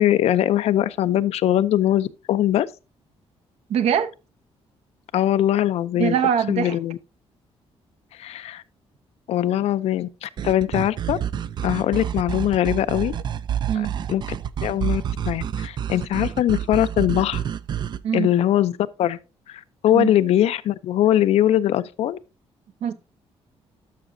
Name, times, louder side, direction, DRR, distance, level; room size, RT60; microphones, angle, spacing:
voice 1, 0.0-2.7 5.1-6.1 6.5-7.0 8.2-8.6 9.3-11.2 11.6-13.2 13.8-14.2 14.6-17.4 18.1-19.2 19.5-22.2, left 12 dB, 70° left, 0.5 m, -21 dB
voice 2, 3.7-4.1 6.0-6.8 13.7-14.0 18.0-18.3 19.9-20.1 22.8-22.9, right 8 dB, 70° right, 0.8 m, -22 dB
sound 1, 10.4-18.0, right 9 dB, 40° right, 0.4 m, -28 dB
12.5 x 5.9 x 2.6 m
cardioid pair, 150°, 11 cm